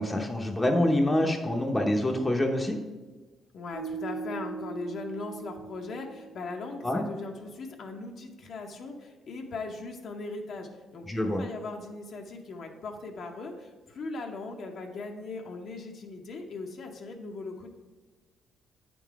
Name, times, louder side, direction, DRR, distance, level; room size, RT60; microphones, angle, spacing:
voice 1, 0.0-2.8 6.8-7.0 11.1-11.4, left 1 dB, 15° left, 2 dB, 0.7 m, -26 dB
voice 2, 3.5-17.8, left 3 dB, 65° left, 1 dB, 0.8 m, -39 dB
sound 1, 3.7-6.9, right 5 dB, 45° right, 1.6 m, -40 dB
8.5 x 3.9 x 4.6 m, 1.3 s
cardioid pair, 90°, 0 cm